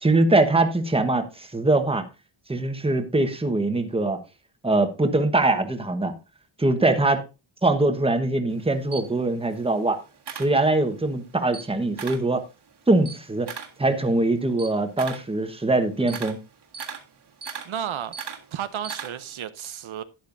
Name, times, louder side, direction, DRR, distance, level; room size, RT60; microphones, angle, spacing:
voice 1, 0.0-2.0 2.5-4.2 4.6-6.1 6.6-7.2 7.6-10.0 10.4-12.4 12.9-13.5 13.8-16.4, right 2 dB, 10° right, 1.1 m, -22 dB
Camera, 8.5-11.1 11.4-12.3 12.7-19.4, right 6 dB, 55° right, 1.8 m, -39 dB
voice 2, 17.6-18.2 18.5-20.0, right 9 dB, 70° right, 0.8 m, -32 dB
11.5 x 10.5 x 2.6 m
wide cardioid pair, 165°, 50 cm